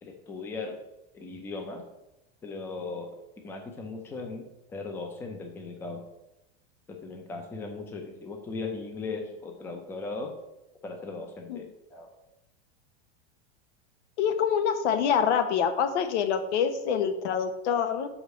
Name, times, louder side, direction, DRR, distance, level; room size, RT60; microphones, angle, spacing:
voice 1, 0.0-0.8 1.1-1.8 2.4-3.2 3.4-6.1 6.9-10.4 10.8-12.2, left 3 dB, 5° left, 3 dB, 0.5 m, -38 dB
voice 2, 14.2-18.1, left 7 dB, 90° left, 8 dB, 1.2 m, -26 dB
6.0 x 5.0 x 6.5 m, 0.90 s
supercardioid pair, 180°, 33 cm